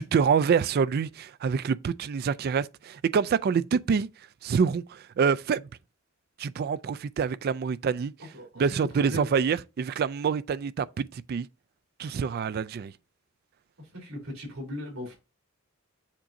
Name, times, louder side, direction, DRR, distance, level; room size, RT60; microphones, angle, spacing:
voice 1, 0.0-4.1 4.4-5.6 6.4-8.1 8.6-11.5 12.0-12.9, right 6 dB, 50° right, 0.3 m, -26 dB
voice 2, 8.2-8.7 9.0-9.4 13.9-15.2, left 1 dB, 90° right, 3.4 m, -38 dB
7.3 x 2.6 x 5.1 m
head